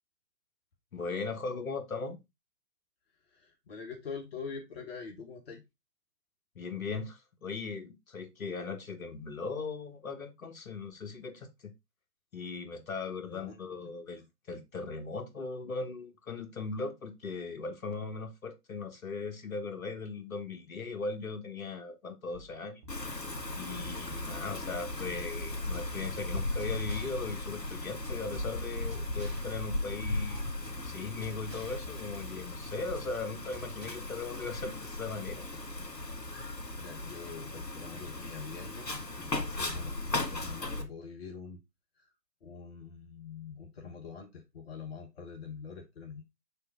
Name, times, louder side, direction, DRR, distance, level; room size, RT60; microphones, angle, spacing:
voice 1, 0.9-2.2 6.5-11.7 12.3-22.8 23.5-30.4 30.8-35.4, left 4 dB, 55° left, 1.5 m, -38 dB
voice 2, 3.3-5.6 13.2-13.6 36.8-41.6 42.0-42.1 42.4-46.2, left 5 dB, 40° left, 1.1 m, -44 dB
sound 1, 22.3-32.1, equal, 30° right, 1.2 m, -53 dB
Wind, 22.9-40.8, left 2 dB, 80° left, 1.8 m, -37 dB
sound 2, 25.5-33.9, equal, 85° right, 2.2 m, -51 dB
6.7 x 3.2 x 4.5 m
figure-of-eight pair, 140°, 49 cm